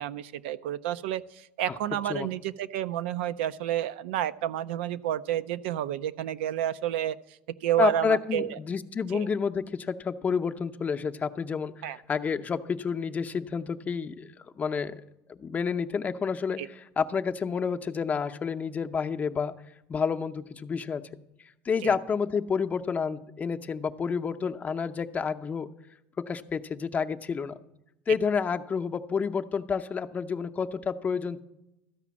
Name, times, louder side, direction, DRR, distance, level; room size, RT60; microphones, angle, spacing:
voice 1, 0.0-8.6 9.1-9.3 11.8-12.0 16.6-16.7 21.8-22.0, right 12 dB, 85° right, 14 dB, 0.4 m, -30 dB
voice 2, 7.8-15.0 15.3-19.5 19.9-21.0 21.6-25.7 26.2-27.6 28.1-31.4, left 6 dB, 25° left, 8 dB, 0.6 m, -29 dB
13.5 x 5.0 x 8.4 m, 0.88 s
supercardioid pair, 110°, 6 cm